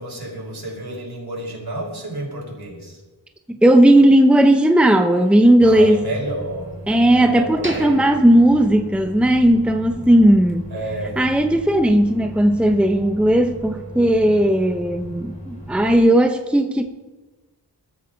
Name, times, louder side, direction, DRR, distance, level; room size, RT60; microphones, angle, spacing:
voice 1, 0.0-3.0 5.6-7.9 10.7-11.2, right 1 dB, 65° right, 5.4 m, -30 dB
voice 2, 3.6-6.0 6.9-10.7 11.2-16.8, right 1 dB, 5° right, 0.8 m, -15 dB
Microwave oven, 5.6-15.9, right 1 dB, 15° left, 4.2 m, -37 dB
sound 1, 7.6-9.6 9.9-10.0 10.5-10.7, right 2 dB, 30° right, 2.0 m, -35 dB
21.5 x 13.5 x 4.0 m
wide cardioid pair, 100°, 41 cm